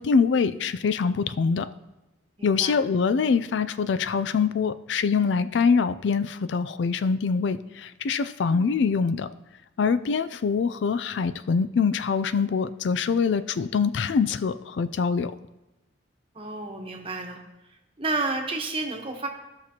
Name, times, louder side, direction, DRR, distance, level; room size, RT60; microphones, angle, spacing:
voice 1, 0.0-1.7 2.4-9.3 9.8-15.3, left 5 dB, 75° left, 14 dB, 0.4 m, -24 dB
voice 2, 2.4-2.8 8.5-8.7 16.3-17.4 17.7-19.3, right 2 dB, 30° right, 2 dB, 1.1 m, -31 dB
16.0 x 6.0 x 2.9 m, 1.0 s
head